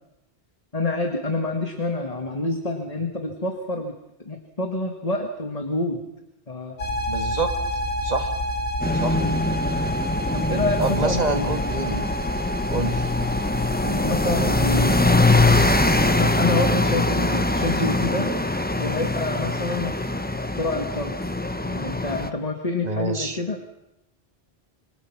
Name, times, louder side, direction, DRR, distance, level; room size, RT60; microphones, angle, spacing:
voice 1, 0.7-4.0 4.3-6.0 6.5-6.8 9.1-9.4 10.3-11.6 13.8-15.2 16.2-18.3 18.8-20.0 20.6-21.2 21.7-23.6, left 2 dB, 35° left, 4 dB, 2.0 m, -27 dB
sound 1, 6.8-16.2, equal, 70° left, 2.5 m, -29 dB
voice 2, 7.1-7.5 8.0-8.3 8.9-9.2 10.8-12.0 12.7-13.1 22.8-23.4, right 3 dB, 40° right, 7 dB, 1.8 m, -27 dB
sound 2, 8.8-22.3, left 2 dB, 10° left, 0.9 m, -23 dB
26.5 x 25.5 x 6.0 m, 0.88 s
omnidirectional pair, 1.0 m